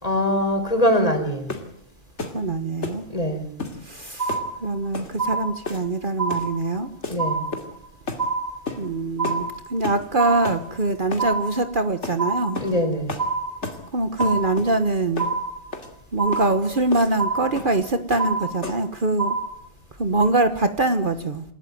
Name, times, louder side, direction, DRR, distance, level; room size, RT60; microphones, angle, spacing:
voice 1, 0.0-1.5 3.1-3.5 7.1-7.5 12.6-13.2, equal, 30° left, 6 dB, 4.3 m, -22 dB
sound 1, 1.5-1.7 2.2-2.4 2.8-3.0 3.6-3.8 4.3-4.5 4.9-5.1 5.6-6.0 6.3-6.5 7.0-7.2 7.5-7.8 8.1-8.3 8.7-8.8 9.2-9.4 9.8-10.1 10.4-10.6 11.1-11.3 12.0-12.2 12.5-12.8 13.1-13.3 13.6-13.8 14.2-14.7 15.2-15.3 15.7-15.9 16.3-16.5 16.9-17.1 17.6-17.8 18.1-18.3 18.6-18.9, left 3 dB, 75° left, 2.9 m, -32 dB
voice 2, 2.3-3.1 3.8-4.3 4.6-6.9 8.8-12.6 13.9-15.3 16.1-19.4 20.0-21.4, right 2 dB, 45° right, 9 dB, 1.4 m, -23 dB
sound 2, 4.2-4.9 5.2-5.9 6.2-6.9 7.2-7.9 8.2-8.9 9.2-9.9 10.2-10.9 11.2-11.9 12.2-12.9 13.2-13.9 14.2-14.9 15.2-15.9 16.2-16.9 17.2-17.9 18.2-18.9 19.2-19.5, right 4 dB, 30° right, 6.6 m, -27 dB
27.5 x 13.5 x 9.3 m, 0.70 s
omnidirectional pair, 1.2 m